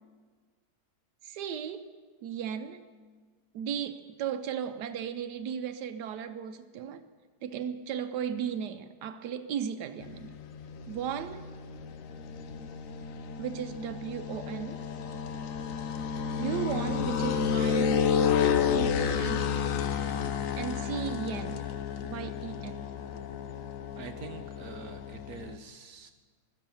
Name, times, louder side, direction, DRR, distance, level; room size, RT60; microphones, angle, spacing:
voice 1, 1.2-1.9 2.2-2.8 3.5-7.0 7.4-10.4 10.9-11.5 13.4-14.9 16.3-18.0 18.5-19.6 20.6-21.7 22.0-22.8, right 8 dB, 90° right, 8 dB, 1.3 m, -36 dB
sound 1, 10.0-25.6, left 7 dB, 60° left, 1.1 m, -31 dB
voice 2, 24.0-26.1, right 6 dB, 70° right, 7 dB, 1.3 m, -45 dB
16.0 x 12.0 x 7.0 m, 1.5 s
omnidirectional pair, 1.7 m